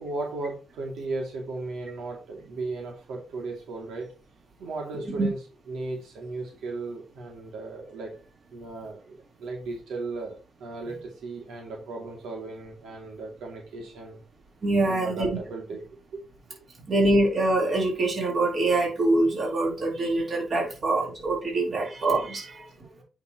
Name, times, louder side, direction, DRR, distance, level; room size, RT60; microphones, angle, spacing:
voice 1, 0.0-4.1 4.6-8.2 8.5-14.2 14.8-16.6 21.7-21.8 22.8-22.9, right 3 dB, 90° right, 0 dB, 2.5 m, -36 dB
voice 2, 14.6-15.4 16.9-22.7, right 2 dB, 40° right, -1 dB, 3.6 m, -24 dB
8.5 x 5.9 x 3.0 m, 0.32 s
cardioid pair, 115°, 0 cm